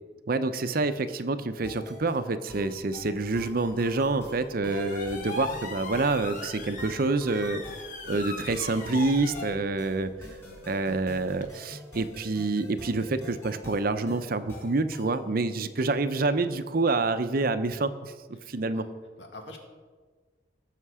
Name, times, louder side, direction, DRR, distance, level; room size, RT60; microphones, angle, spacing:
voice 1, 0.3-7.6 8.1-10.1 10.7-18.1 18.5-18.8, right 3 dB, 55° right, 11 dB, 0.7 m, -27 dB
sound 1, 1.6-15.2, left 1 dB, 15° left, 3.2 m, -47 dB
sound 2, 2.9-11.5, left 3 dB, 45° left, 1.4 m, -40 dB
voice 2, 18.4-18.8 19.2-19.6, left 2 dB, 80° left, 2 dB, 2.0 m, -46 dB
17.0 x 6.6 x 4.9 m, 1.5 s
head